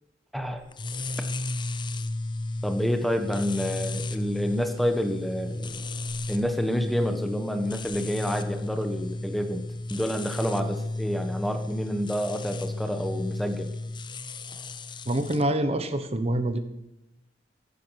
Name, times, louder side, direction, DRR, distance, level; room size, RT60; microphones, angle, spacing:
sound 1, 0.7-15.4, left 2 dB, 25° left, 0.7 m, -33 dB
voice 1, 2.6-5.8 6.3-13.8, equal, ahead, 7 dB, 1.3 m, -29 dB
voice 2, 15.1-16.6, right 1 dB, 35° right, 9 dB, 1.2 m, -26 dB
14.5 x 14.0 x 6.4 m, 0.89 s
head